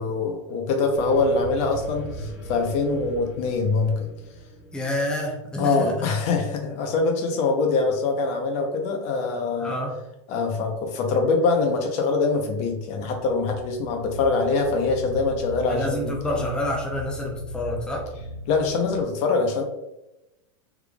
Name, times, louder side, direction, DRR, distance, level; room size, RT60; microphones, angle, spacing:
voice 1, 0.0-4.1 5.6-9.8 10.3-16.5 18.5-19.6, left 4 dB, 45° left, 3 dB, 0.7 m, -24 dB
sound 1, 0.9-5.9 12.0-19.1, equal, 65° left, 1.4 m, -38 dB
voice 2, 4.7-6.0 9.6-9.9 15.7-18.1, left 1 dB, 5° left, -1 dB, 0.6 m, -28 dB
3.5 x 3.3 x 2.3 m, 0.94 s
hypercardioid pair, 120°, 15 cm